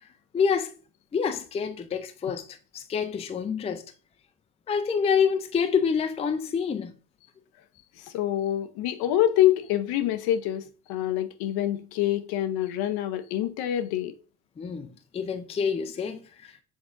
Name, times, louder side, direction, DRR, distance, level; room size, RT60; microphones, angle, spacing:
voice 1, 0.3-0.7 1.1-2.5 2.7-3.8 4.7-6.9 14.6-16.6, left 6 dB, 15° left, 0.4 m, -27 dB
voice 2, 8.0-14.1, left 12 dB, 60° left, 0.7 m, -26 dB
6.2 x 3.4 x 2.5 m
hypercardioid pair, 70°, 43 cm